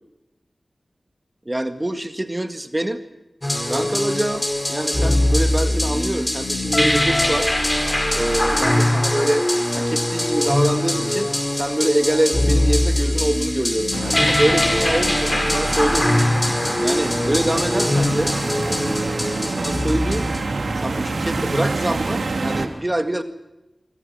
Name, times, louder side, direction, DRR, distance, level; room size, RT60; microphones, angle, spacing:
voice 1, 1.5-3.0 3.7-7.5 8.1-16.1 16.8-18.4 18.7-20.3 20.8-23.2, right 1 dB, 25° right, 8 dB, 1.9 m, -25 dB
sound 1, 3.4-20.4, left 1 dB, 20° left, 5.3 m, -21 dB
sound 2, 13.9-22.7, right 3 dB, 80° right, 2.9 m, -27 dB
25.5 x 25.0 x 6.0 m, 0.98 s
cardioid pair, 45°, 0 cm